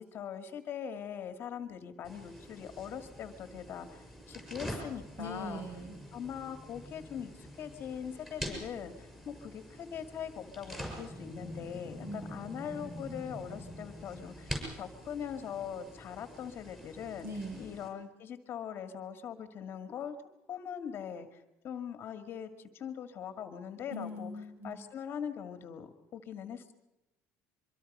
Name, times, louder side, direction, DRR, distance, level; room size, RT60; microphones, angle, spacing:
voice 1, 0.0-5.6 6.1-17.3 17.6-20.2 20.5-24.3 24.6-26.7, left 8 dB, 40° left, 9 dB, 1.9 m, -41 dB
sound 1, 2.0-17.9, equal, 5° right, 6.8 m, -45 dB
voice 2, 5.2-6.0 12.0-12.4 17.2-17.6 23.9-24.8, equal, 40° right, 3 dB, 7.9 m, -41 dB
24.0 x 24.0 x 5.4 m, 0.93 s
cardioid pair, 145°, 6 cm